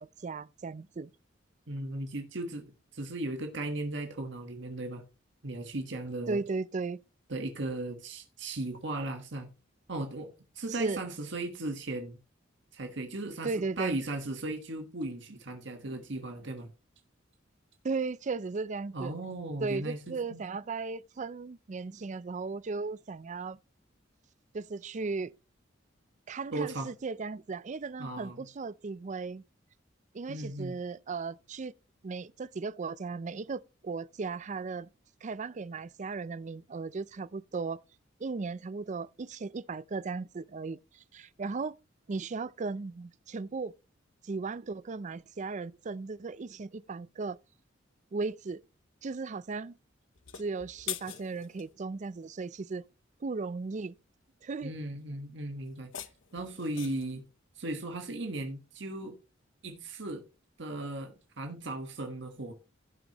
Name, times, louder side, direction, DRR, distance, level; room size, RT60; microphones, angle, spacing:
voice 1, 0.0-1.1 6.3-7.0 10.7-11.0 13.4-14.0 17.8-19.1 19.6-23.6 24.5-25.3 26.3-29.4 30.1-31.7 32.0-34.9 35.2-37.8 38.2-41.7 42.1-43.7 44.2-47.4 48.1-48.6 49.0-49.7 50.4-52.8 53.2-54.0 54.4-54.7, right 4 dB, 40° right, 0.4 m, -36 dB
voice 2, 1.7-5.0 5.4-6.4 7.3-9.5 9.9-10.3 10.5-12.2 12.7-16.7 18.9-20.4 26.5-26.9 28.0-28.4 30.3-30.8 54.6-55.9 56.3-57.2 57.5-59.1 59.6-60.3 60.6-62.5, right 2 dB, 65° right, 1.5 m, -37 dB
sound 1, 50.2-51.7 55.7-57.2, left 11 dB, 80° left, 0.9 m, -42 dB
16.5 x 6.2 x 3.0 m
head